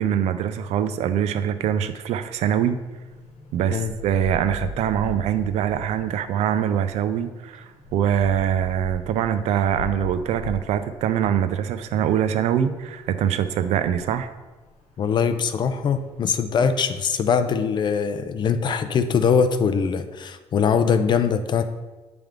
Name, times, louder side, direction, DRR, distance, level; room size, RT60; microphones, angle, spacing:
voice 1, 0.0-2.8 3.5-14.3, right 9 dB, 80° right, 11 dB, 0.5 m, -23 dB
sound 1, 2.1-16.2, left 1 dB, 70° left, 1.2 m, -40 dB
voice 2, 15.0-21.6, left 6 dB, 45° left, 10 dB, 0.5 m, -22 dB
8.9 x 3.4 x 3.6 m, 1.2 s
cardioid pair, 140°, 11 cm